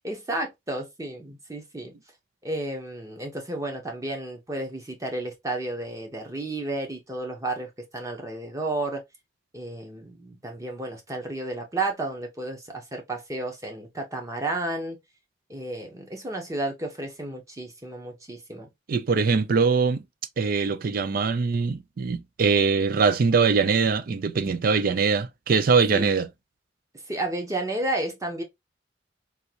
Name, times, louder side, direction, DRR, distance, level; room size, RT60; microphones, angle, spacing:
voice 1, 0.0-1.9 2.4-9.0 9.5-15.0 15.5-18.7 25.9-26.1 27.1-28.4, right 2 dB, 20° right, 0.9 m, -32 dB
voice 2, 18.9-20.0 20.4-26.3, right 5 dB, 50° right, 0.4 m, -22 dB
3.6 x 2.6 x 2.8 m
head